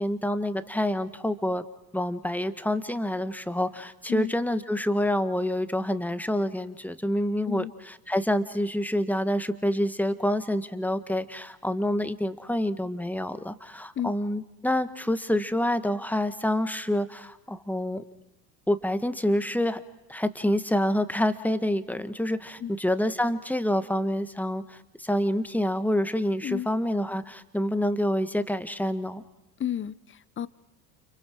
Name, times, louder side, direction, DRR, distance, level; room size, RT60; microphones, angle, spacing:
voice 1, 0.0-1.6 1.9-7.6 8.1-18.0 18.7-19.8 20.1-29.2, left 1 dB, 5° left, 10 dB, 1.6 m, -27 dB
voice 2, 29.6-30.5, left 10 dB, 25° left, 18 dB, 0.9 m, -32 dB
30.0 x 30.0 x 4.7 m, 0.98 s
hypercardioid pair, 75°, 49 cm